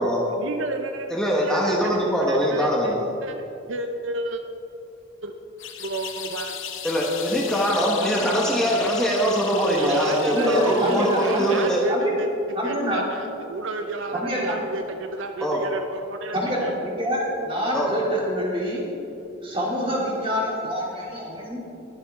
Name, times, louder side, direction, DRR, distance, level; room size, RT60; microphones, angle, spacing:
voice 1, 0.4-1.1 1.4-1.8 2.3-4.4 5.2-5.3 5.8-6.6 7.7-8.2 9.8-12.3 12.6-16.7, right 2 dB, 65° right, 5 dB, 0.6 m, -32 dB
voice 2, 1.1-3.0 6.8-11.9 15.4-15.6 17.7-17.9 20.9-21.1, equal, 5° left, -3 dB, 1.2 m, -22 dB
sound 1, 5.6-11.9, left 8 dB, 65° left, 0.9 m, -36 dB
voice 3, 10.3-12.1 12.5-13.0 14.1-14.6 16.3-18.8 19.4-21.6, equal, 25° right, -5 dB, 2.8 m, -26 dB
22.0 x 7.3 x 3.7 m, 2.9 s
head